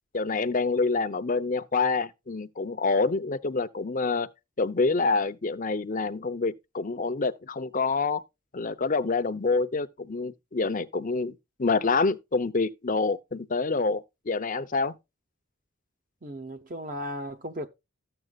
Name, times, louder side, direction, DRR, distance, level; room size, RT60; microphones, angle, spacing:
voice 1, 0.1-4.3 4.6-8.2 8.5-15.0, left 4 dB, 40° left, 0.7 m, -27 dB
voice 2, 16.2-17.7, equal, 40° right, 0.8 m, -36 dB
13.0 x 7.8 x 2.4 m
head